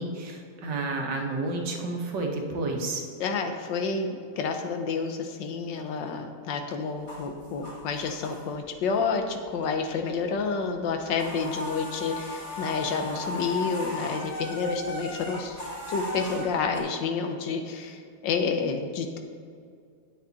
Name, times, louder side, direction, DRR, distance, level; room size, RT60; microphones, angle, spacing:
voice 1, 0.0-3.0, right 2 dB, 75° right, 2 dB, 1.8 m, -30 dB
voice 2, 3.2-15.6 15.9-19.2, left 5 dB, 85° left, 5 dB, 1.6 m, -29 dB
sound 1, 7.0-8.7 9.1-10.0 10.3-10.5 10.7-16.8, left 1 dB, 25° left, 2.3 m, -36 dB
9.5 x 8.2 x 4.0 m, 2.2 s
omnidirectional pair, 1.9 m